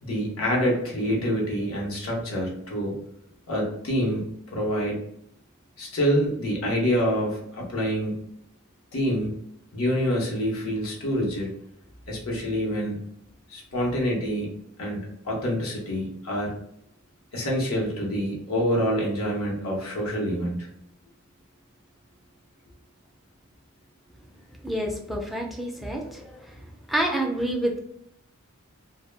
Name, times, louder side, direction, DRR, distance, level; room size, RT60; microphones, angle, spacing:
voice 1, 0.0-3.0 3.5-5.0 5.8-8.2 8.9-9.4 9.7-11.5 12.1-13.0 13.5-14.5 14.8-16.6 17.3-20.6, equal, 85° left, -2 dB, 0.7 m, -26 dB
voice 2, 24.6-26.6 26.9-27.8, right 1 dB, ahead, 0 dB, 0.3 m, -28 dB
2.1 x 2.0 x 3.2 m, 0.72 s
head